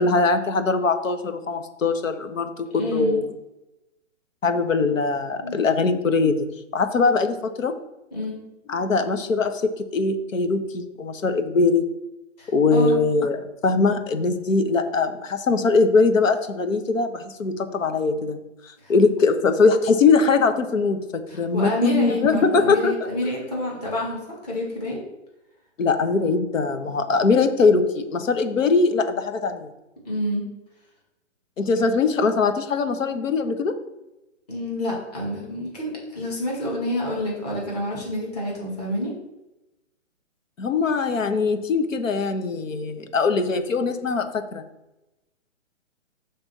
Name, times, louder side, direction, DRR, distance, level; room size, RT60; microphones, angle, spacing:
voice 1, 0.0-3.3 4.4-7.7 8.7-11.9 12.5-18.4 18.6-23.1 25.8-29.7 31.6-33.7 40.6-44.6, left 4 dB, 80° left, 8 dB, 1.1 m, -21 dB
voice 2, 2.8-3.2 5.4-5.6 8.1-8.4 12.4-13.0 18.8-18.9 21.3-25.0 30.0-30.5 34.5-39.1, left 1 dB, 30° left, -4 dB, 2.3 m, -28 dB
6.8 x 3.5 x 6.0 m, 0.97 s
hypercardioid pair, 180°, 38 cm